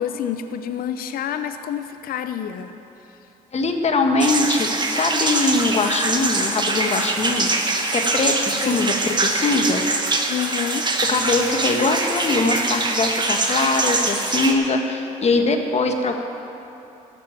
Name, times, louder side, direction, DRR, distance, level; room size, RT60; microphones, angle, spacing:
voice 1, 0.0-2.7 8.6-8.9 10.3-10.9, left 9 dB, 60° left, 9 dB, 0.7 m, -28 dB
voice 2, 3.5-9.8 11.0-16.1, left 3 dB, 40° left, 4 dB, 1.5 m, -22 dB
sound 1, 4.2-14.5, right 3 dB, 25° right, 1.6 m, -23 dB
14.0 x 6.8 x 9.1 m, 3.0 s
supercardioid pair, 65°, 17 cm